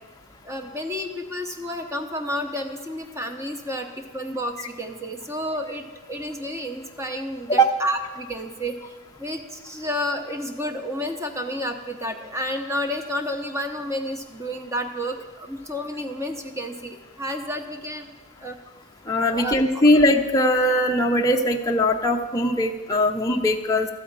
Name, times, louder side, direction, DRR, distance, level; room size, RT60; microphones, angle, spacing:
voice 1, 0.4-18.1 18.4-18.6 19.3-19.6, equal, 15° right, 5 dB, 0.8 m, -31 dB
voice 2, 19.1-23.9, equal, 15° left, 1 dB, 0.5 m, -20 dB
12.5 x 4.9 x 8.6 m, 1.3 s
head